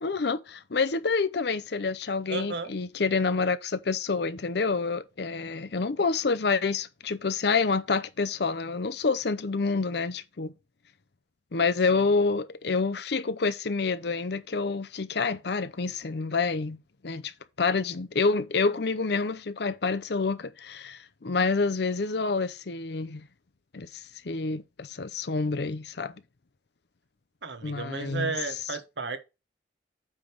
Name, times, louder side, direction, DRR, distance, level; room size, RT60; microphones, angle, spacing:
voice 1, 0.0-10.5 11.5-16.8 17.0-17.3 17.6-23.2 23.7-26.1 27.6-28.3, left 4 dB, 60° left, 0.6 m, -28 dB
voice 2, 2.3-2.7 11.9-12.0 27.4-29.2, right 4 dB, 70° right, 1.1 m, -33 dB
8.9 x 3.5 x 5.9 m
head